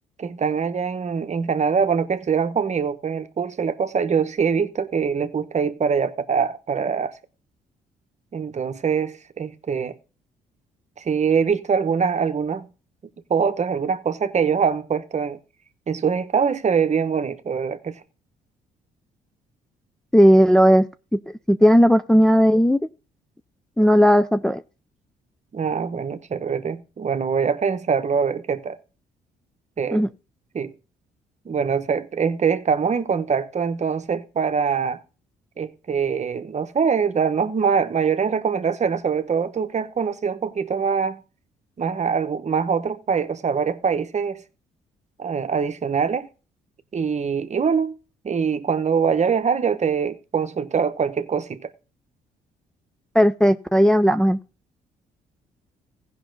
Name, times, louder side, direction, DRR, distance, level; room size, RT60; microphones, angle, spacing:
voice 1, 0.2-7.2 8.3-9.9 11.0-12.7 13.3-15.4 15.9-18.0 25.5-28.8 29.8-30.0 30.5-30.7 31.4-35.0 35.6-41.2 41.8-44.4 45.2-46.3 46.9-47.9 48.2-51.7, right 6 dB, 40° right, 0.9 m, -23 dB
voice 2, 20.1-21.2 21.5-22.8 23.8-24.6 29.9-30.1 53.1-54.4, equal, 5° left, 0.4 m, -16 dB
15.5 x 5.5 x 3.9 m
supercardioid pair, 70°, 18 cm